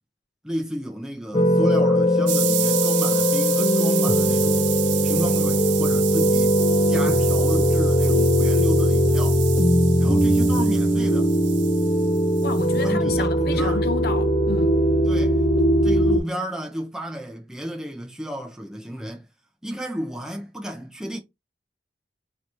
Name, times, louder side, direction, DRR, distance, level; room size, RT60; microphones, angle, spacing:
voice 1, 0.4-4.7 5.0-6.6 6.9-9.4 10.0-11.3 12.8-13.8 15.0-15.4 15.8-19.3 19.6-21.2, equal, 5° right, 0.9 m, -32 dB
sound 1, 1.3-16.2, equal, 30° left, 0.7 m, -20 dB
sound 2, 2.3-12.9, right 15 dB, 80° right, 0.4 m, -30 dB
voice 2, 12.4-14.8, left 4 dB, 60° left, 0.7 m, -31 dB
3.1 x 3.1 x 4.0 m
head